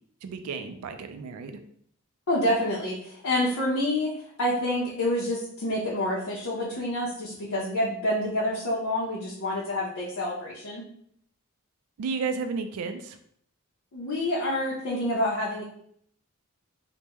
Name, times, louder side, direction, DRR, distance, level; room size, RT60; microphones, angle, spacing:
voice 1, 0.2-1.6 12.0-13.2, right 5 dB, 90° right, 8 dB, 0.3 m, -32 dB
voice 2, 2.3-4.1 4.4-10.8 13.9-15.6, left 1 dB, 80° left, -6 dB, 0.7 m, -27 dB
3.4 x 2.1 x 2.9 m, 0.66 s
head